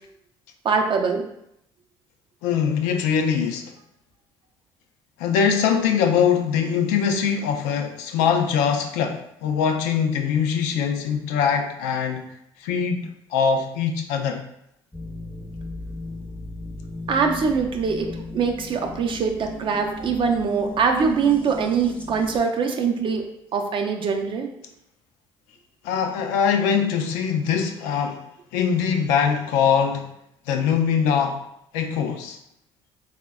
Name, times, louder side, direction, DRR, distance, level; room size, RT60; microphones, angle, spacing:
voice 1, 0.6-1.3 17.1-24.5, right 5 dB, 45° right, 4 dB, 0.5 m, -23 dB
voice 2, 2.4-3.7 5.2-12.3 12.6-14.4 25.8-28.2 28.5-30.1 30.5-31.4 31.7-32.4, left 7 dB, 85° left, 4 dB, 0.4 m, -22 dB
sound 1, 14.9-22.4, left 2 dB, 10° left, 0.5 m, -36 dB
3.3 x 2.1 x 2.2 m, 0.78 s
supercardioid pair, 70°, 12 cm